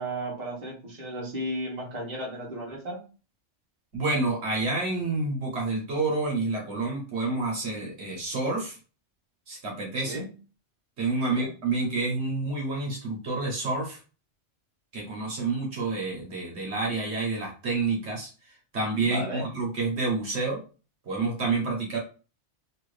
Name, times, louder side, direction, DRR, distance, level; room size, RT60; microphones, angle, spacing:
voice 1, 0.0-3.0 10.0-10.3 11.3-11.5 19.0-19.5, right 1 dB, 35° right, -3 dB, 1.1 m, -34 dB
voice 2, 3.9-8.8 9.5-10.2 11.0-14.0 14.9-18.3 18.7-20.6 21.1-22.0, right 3 dB, 65° right, -2 dB, 1.3 m, -28 dB
2.9 x 2.6 x 3.2 m, 0.35 s
omnidirectional pair, 1.2 m